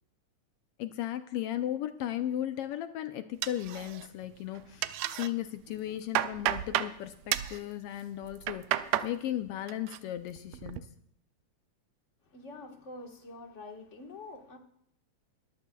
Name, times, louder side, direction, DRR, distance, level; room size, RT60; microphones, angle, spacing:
voice 1, 0.8-10.9, left 12 dB, 85° left, 1.3 m, -36 dB
sound 1, 3.4-4.3 4.5-5.3 5.7-6.9 7.3-7.6 8.2-9.1 9.5-10.0 10.4-10.8, right 12 dB, 75° right, 1.7 m, -32 dB
voice 2, 12.2-14.6, left 2 dB, 40° left, 1.1 m, -46 dB
22.0 x 14.0 x 2.3 m
omnidirectional pair, 3.4 m